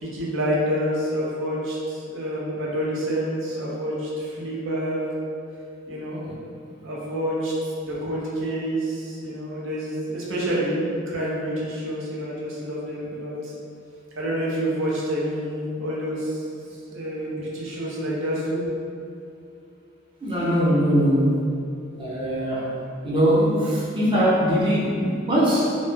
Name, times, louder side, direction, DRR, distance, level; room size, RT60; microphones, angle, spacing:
voice 1, 0.0-5.1 5.9-6.2 6.8-13.5 14.2-16.4 16.7-18.6, equal, 85° right, -6 dB, 0.6 m, -28 dB
voice 2, 20.2-21.4 22.0-22.7 23.0-25.8, equal, 25° right, -8 dB, 0.5 m, -21 dB
2.1 x 2.0 x 3.2 m, 2.5 s
head